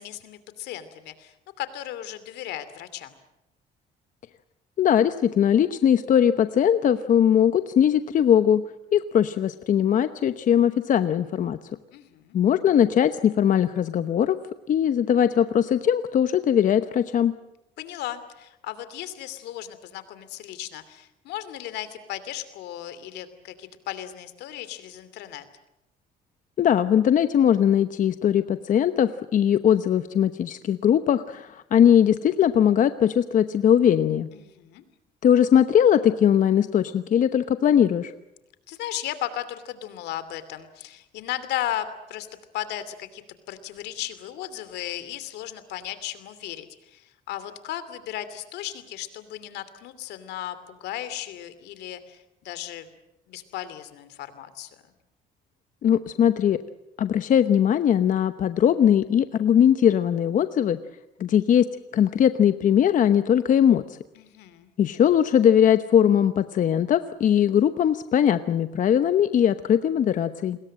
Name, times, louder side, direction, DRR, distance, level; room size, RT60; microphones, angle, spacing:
voice 1, 0.0-3.1 11.9-12.4 17.8-25.4 34.3-34.8 38.7-42.3 42.5-52.9 53.3-54.7 64.2-64.7, left 12 dB, 80° left, 13 dB, 2.7 m, -36 dB
voice 2, 4.8-8.6 8.9-11.6 12.3-14.4 14.7-17.3 26.6-34.3 35.2-38.1 55.8-56.6 57.0-60.8 61.2-61.7 61.9-64.0 64.8-70.6, left 9 dB, 50° left, 11 dB, 1.0 m, -20 dB
29.0 x 21.5 x 7.6 m, 0.89 s
cardioid pair, 110°, 17 cm